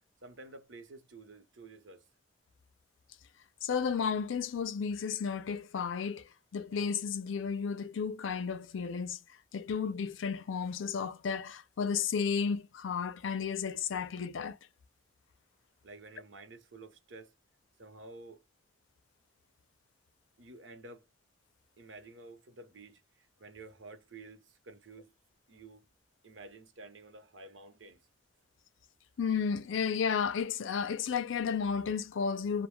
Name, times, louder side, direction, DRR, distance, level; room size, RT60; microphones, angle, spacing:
voice 1, 0.2-2.0 15.8-17.4 17.8-18.4 20.4-21.0 21.8-25.1 25.5-25.9 26.2-28.0, right 3 dB, 80° right, 0.8 m, -51 dB
voice 2, 3.6-6.3 6.5-9.2 9.5-14.6 29.2-32.7, left 6 dB, 90° left, 0.5 m, -33 dB
2.2 x 2.1 x 3.0 m
head